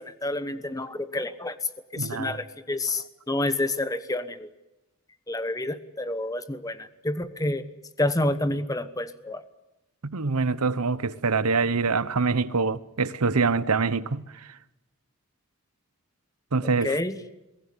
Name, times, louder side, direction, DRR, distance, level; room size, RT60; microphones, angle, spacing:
voice 1, 0.0-1.6 1.9-4.5 5.3-7.7 8.0-9.4 16.6-17.2, left 2 dB, 15° left, 1.1 m, -29 dB
voice 2, 2.0-2.4 10.0-14.2 16.5-17.0, right 4 dB, 90° right, 0.9 m, -25 dB
23.0 x 16.5 x 9.8 m
head